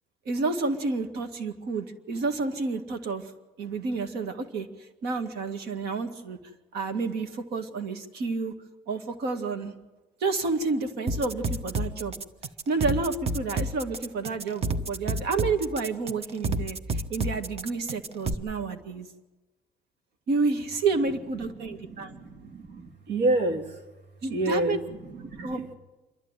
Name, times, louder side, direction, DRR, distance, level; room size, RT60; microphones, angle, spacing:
voice 1, 0.3-3.3 3.6-4.7 5.0-6.4 6.7-8.5 8.9-9.7 10.2-12.1 12.7-19.1 20.3-22.1 24.2-24.8 25.4-25.6, right 3 dB, 70° right, 6 dB, 2.1 m, -30 dB
sound 1, 11.1-18.3, right 2 dB, 35° right, 1.2 m, -30 dB
voice 2, 21.5-25.7, right 2 dB, 90° right, 4 dB, 2.6 m, -30 dB
27.0 x 11.5 x 9.1 m, 1.2 s
cardioid pair, 110°, 17 cm